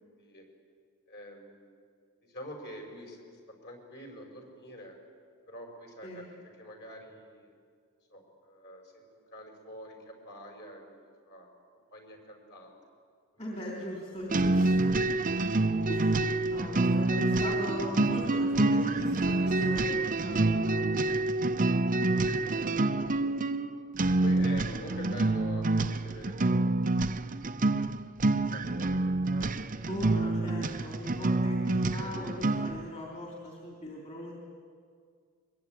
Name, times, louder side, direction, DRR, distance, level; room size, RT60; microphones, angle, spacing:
voice 1, 0.0-0.4 1.1-1.8 2.2-5.0 5.5-6.3 6.6-7.5 8.1-9.0 9.3-11.5 11.9-12.8 14.9-15.0 16.4-16.7 17.3-17.4 20.7-21.0 22.1-22.5 24.2-26.7 28.2-29.6 31.0-31.5 32.0-32.2, equal, 50° left, 3 dB, 5.3 m, -47 dB
voice 2, 13.4-14.9 15.7-20.9 22.4-22.7 23.2-23.5 24.6-25.1 29.9-34.3, equal, 30° left, -2 dB, 3.6 m, -40 dB
sound 1, 14.3-32.8, right 2 dB, 35° right, 0.7 m, -27 dB
23.0 x 22.5 x 9.2 m, 2.1 s
head